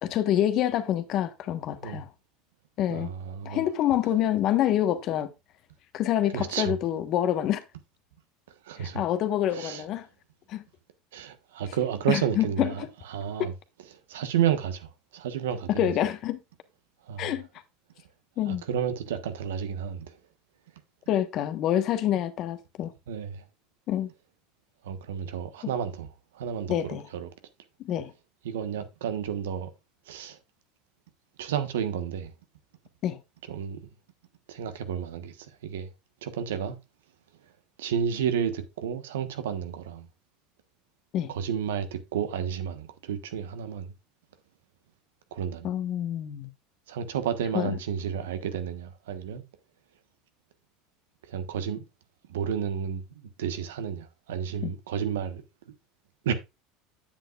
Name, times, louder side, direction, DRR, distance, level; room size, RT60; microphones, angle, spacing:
voice 1, 0.0-2.1 2.8-3.1 3.4-5.3 5.9-7.6 8.8-10.1 10.5-10.6 12.1-12.7 15.7-16.4 17.2-17.5 18.4-18.6 21.1-22.9 23.9-24.1 26.7-27.1 27.8-28.1 33.0-33.2 41.1-41.3 45.6-46.5 47.5-47.7 54.6-54.7, left 11 dB, 50° left, 1.3 m, -27 dB
voice 2, 2.9-3.6 6.3-6.7 8.6-9.0 9.5-9.8 11.1-13.5 14.1-15.9 17.1-17.3 18.4-20.1 23.1-23.4 24.8-26.1 26.3-27.3 28.4-29.7 30.1-30.4 31.4-32.3 33.5-33.8 34.5-35.9 36.2-36.8 37.8-40.1 41.3-43.9 45.3-45.7 46.9-49.4 51.3-51.8 52.3-53.0 53.4-55.4 56.2-56.3, right 8 dB, 90° right, 1.3 m, -31 dB
8.9 x 7.9 x 2.4 m
supercardioid pair, 110°, 0 cm